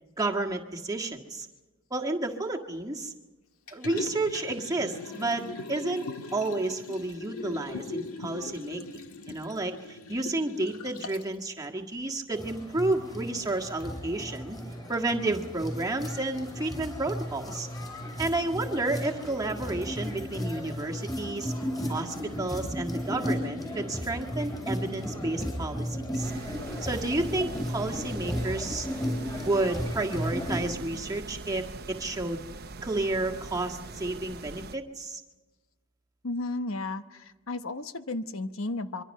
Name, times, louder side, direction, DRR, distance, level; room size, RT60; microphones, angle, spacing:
voice 1, 0.2-1.5 1.9-3.1 3.7-6.1 6.3-8.8 9.3-14.6 14.9-17.7 18.2-21.5 21.9-25.9 26.1-26.3 26.8-28.9 29.4-32.4 32.8-35.2, right 2 dB, 15° right, 1 dB, 1.7 m, -31 dB
Liquid, 3.7-11.3 11.8-11.9, left 3 dB, 85° left, 1.8 m, -40 dB
sound 1, 12.3-30.6, equal, 15° left, 8.0 m, -34 dB
sound 2, 26.2-34.8, right 3 dB, 45° right, 0.9 m, -42 dB
voice 2, 36.2-39.0, left 2 dB, 70° left, 9 dB, 1.0 m, -33 dB
25.5 x 24.0 x 5.5 m, 1.2 s
head